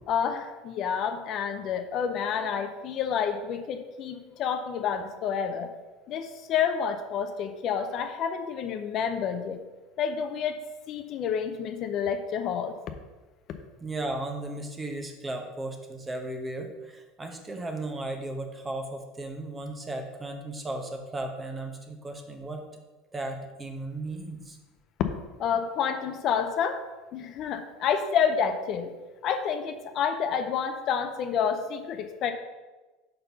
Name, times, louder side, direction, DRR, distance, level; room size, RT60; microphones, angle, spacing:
voice 1, 0.1-5.7 6.1-9.6 10.0-10.6 10.9-12.7 25.4-26.8 27.1-28.9 29.2-32.3, left 7 dB, 45° left, 8 dB, 0.5 m, -29 dB
voice 2, 13.8-22.6 23.1-24.6, right 2 dB, 15° right, 4 dB, 0.8 m, -35 dB
5.4 x 4.5 x 5.5 m, 1.2 s
supercardioid pair, 140°, 0 cm